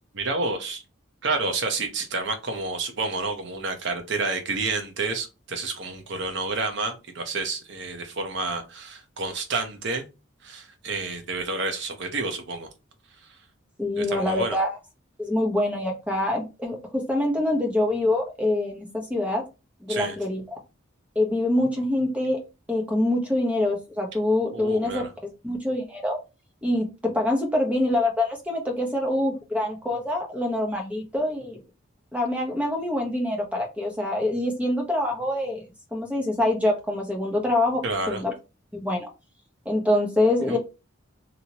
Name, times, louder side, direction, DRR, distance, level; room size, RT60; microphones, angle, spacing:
voice 1, 0.1-0.8 1.2-10.1 10.4-12.7 14.0-14.6 19.9-20.2 24.5-25.1 37.8-38.2 40.5-40.6, right 3 dB, 60° right, 0.7 m, -29 dB
voice 2, 13.8-14.7 15.2-19.4 19.8-20.4 21.1-22.4 22.7-25.0 25.4-26.2 26.6-31.6 32.1-35.6 35.9-37.8 38.1-38.3 38.7-39.1 39.6-40.6, left 1 dB, 5° right, 0.8 m, -25 dB
2.9 x 2.8 x 2.8 m
head